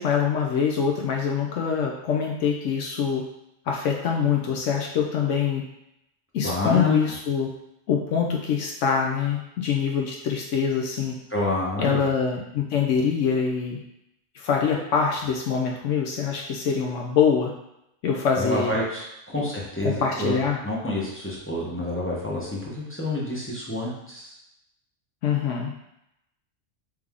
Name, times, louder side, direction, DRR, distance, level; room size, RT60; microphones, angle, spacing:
voice 1, 0.0-3.2 3.7-5.6 6.3-7.5 7.9-11.2 11.8-13.8 14.3-17.5 18.0-18.8 19.4-19.5 19.8-20.6 25.2-25.7, left 6 dB, 75° left, 0 dB, 0.9 m, -24 dB
voice 2, 6.4-7.0 11.3-12.1 18.4-19.0 19.3-20.4 20.6-24.3, left 1 dB, 10° left, -6 dB, 0.7 m, -28 dB
3.4 x 3.3 x 3.5 m, 0.83 s
omnidirectional pair, 1.3 m